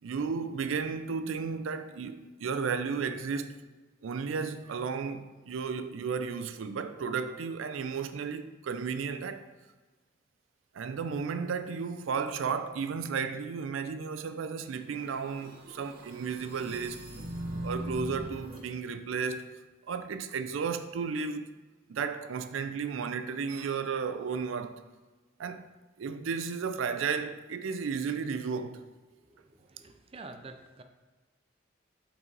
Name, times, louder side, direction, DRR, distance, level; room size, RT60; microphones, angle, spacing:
voice 1, 0.0-3.6 4.0-9.4 10.7-17.1 17.6-19.5 19.9-21.5 21.9-24.8 25.4-28.8, right 5 dB, 85° right, 0.4 m, -33 dB
sound 1, 14.9-18.6, right 1 dB, 50° right, 1.1 m, -40 dB
voice 2, 29.3-30.8, right 3 dB, 30° right, 0.5 m, -48 dB
5.9 x 5.4 x 3.9 m
head